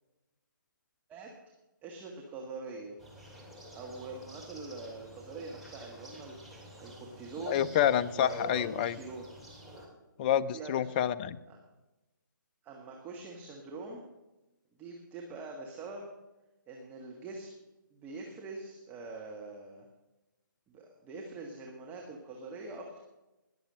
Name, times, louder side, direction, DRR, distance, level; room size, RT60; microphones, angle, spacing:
voice 1, 1.8-3.0 3.7-7.7 8.1-9.3 10.5-11.0 11.5-11.6 12.6-14.0 14.8-16.1 16.7-17.5 17.9-19.9 20.7-23.0, right 3 dB, 15° right, 0 dB, 1.5 m, -44 dB
sound 1, 3.0-9.9, equal, ahead, 2.7 m, -51 dB
voice 2, 7.5-8.9 10.2-11.4, left 10 dB, 25° left, 16 dB, 0.4 m, -28 dB
19.5 x 7.2 x 6.3 m, 1.0 s
figure-of-eight pair, 145°, 11 cm